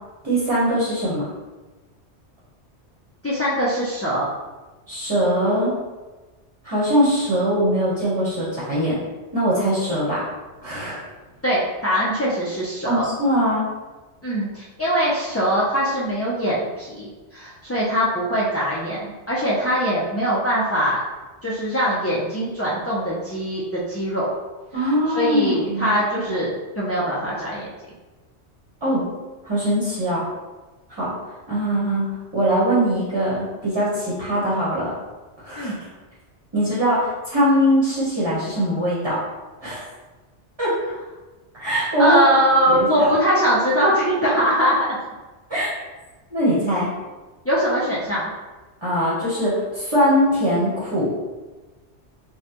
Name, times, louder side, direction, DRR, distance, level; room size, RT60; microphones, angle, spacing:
voice 1, 0.2-1.3 4.9-5.7 6.6-9.0 9.3-10.2 10.6-11.0 12.8-13.7 24.7-25.9 28.8-29.0 29.4-30.2 30.9-31.1 31.5-34.9 35.4-35.7 36.5-39.2 39.6-39.8 40.6-40.7 41.6-42.2 42.7-43.1 45.5-45.7 46.3-46.9 48.8-51.2, equal, 25° right, -7 dB, 0.9 m, -21 dB
voice 2, 3.2-4.3 11.4-13.1 14.2-21.0 21.4-24.3 24.7-26.5 26.8-27.7 35.6-35.8 42.0-44.8 47.4-48.3, equal, 25° left, -8 dB, 0.3 m, -22 dB
5.2 x 2.3 x 2.9 m, 1.2 s
omnidirectional pair, 1.2 m